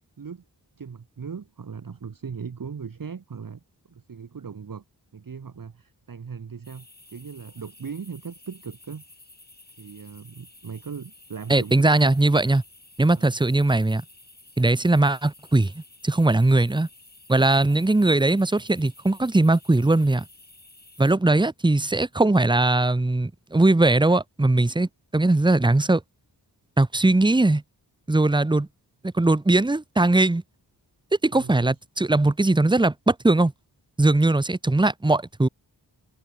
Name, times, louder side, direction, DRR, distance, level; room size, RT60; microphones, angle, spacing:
voice 1, 0.8-3.6 3.9-4.8 5.1-9.0 9.8-12.2 13.2-13.4 31.3-31.7, right 6 dB, 50° right, 1.3 m, -38 dB
sound 1, 6.6-21.1, left 2 dB, 20° left, 5.1 m, -52 dB
voice 2, 11.5-12.6 13.0-14.0 14.6-16.9 17.3-20.2 21.0-26.0 26.8-27.6 28.1-28.7 29.1-30.4 31.2-33.5 34.0-35.5, right 2 dB, 10° right, 0.7 m, -20 dB
wide cardioid pair, 85°, 43 cm